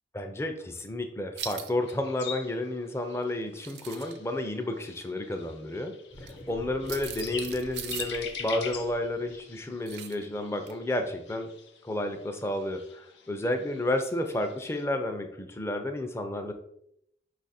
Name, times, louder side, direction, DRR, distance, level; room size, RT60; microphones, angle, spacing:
voice 1, 0.1-11.5 11.8-16.5, left 1 dB, 15° left, 5 dB, 0.4 m, -31 dB
sound 1, 1.4-1.7 3.4-4.2 6.2-6.3 6.8-8.2 9.9-10.2 10.7-10.8, right 9 dB, 70° right, 0.5 m, -39 dB
sound 2, 1.8-14.8, left 6 dB, 85° left, 0.6 m, -45 dB
sound 3, 6.1-10.8, equal, 40° left, 0.8 m, -49 dB
5.2 x 2.5 x 4.2 m, 0.76 s
head